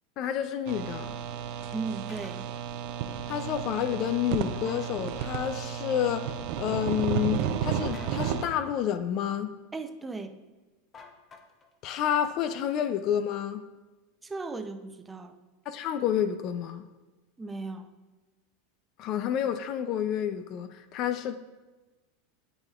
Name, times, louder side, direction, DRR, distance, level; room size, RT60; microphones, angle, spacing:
voice 1, 0.2-1.1 3.3-9.5 11.8-13.6 15.7-16.8 19.0-21.4, left 9 dB, 50° left, 0.4 m, -29 dB
sound 1, 0.7-8.5, right 9 dB, 60° right, 0.5 m, -33 dB
voice 2, 1.7-2.5 9.7-10.4 14.2-15.3 17.4-17.9, right 3 dB, 15° right, 0.6 m, -36 dB
sound 2, 2.1-2.4 4.5-4.9 7.9-8.4 10.9-11.7, left 5 dB, 30° left, 0.8 m, -49 dB
11.5 x 4.1 x 2.4 m
hypercardioid pair, 105°, 0 cm